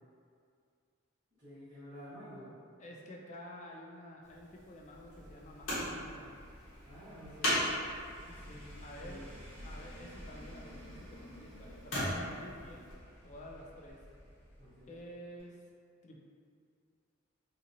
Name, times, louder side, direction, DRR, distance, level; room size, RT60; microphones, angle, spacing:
voice 1, 1.4-2.5 6.8-7.7 9.0-9.2 14.6-15.0, equal, 30° right, -16 dB, 1.0 m, -50 dB
voice 2, 2.8-6.3 8.3-9.3 9.6-12.9 13.2-14.0 14.9-15.6 16.0-16.2, left 1 dB, 35° left, -1 dB, 0.3 m, -50 dB
sound 1, 4.2-12.9 13.9-14.0, left 1 dB, 80° left, 0.9 m, -40 dB
sound 2, 4.8-15.1 15.4-15.5, equal, 15° left, 1.1 m, -52 dB
2.7 x 2.7 x 2.5 m, 2.3 s
head